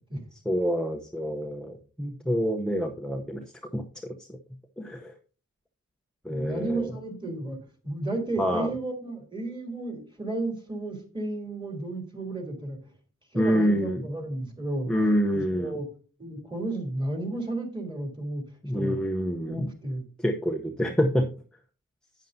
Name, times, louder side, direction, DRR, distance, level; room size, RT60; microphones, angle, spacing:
voice 1, 0.4-3.4 3.7-4.4 4.8-5.1 6.2-6.9 8.4-8.7 13.3-14.0 14.9-15.8 18.6-19.7 20.2-21.3, equal, ahead, 3 dB, 0.7 m, -27 dB
voice 2, 6.3-12.8 13.3-14.9 15.3-15.9 16.2-18.4 18.7-19.0 19.4-20.0, right 2 dB, 15° right, 3 dB, 3.1 m, -33 dB
11.0 x 9.1 x 2.7 m, 0.37 s
wide cardioid pair, 105°, 33 cm